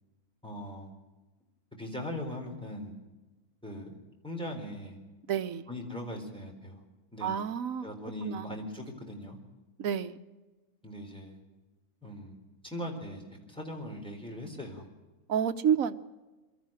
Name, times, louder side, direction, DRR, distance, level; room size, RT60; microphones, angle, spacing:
voice 1, 0.4-0.9 1.8-3.0 3.6-3.9 4.2-5.0 5.7-6.8 7.1-7.3 7.8-9.4 10.8-11.4 12.0-14.9, left 1 dB, 5° left, 1 dB, 4.1 m, -40 dB
voice 2, 5.3-5.7 7.2-7.9 8.2-8.6 9.8-10.2 15.3-16.0, right 8 dB, 70° right, 11 dB, 1.2 m, -29 dB
24.0 x 13.0 x 9.1 m, 1.2 s
omnidirectional pair, 1.5 m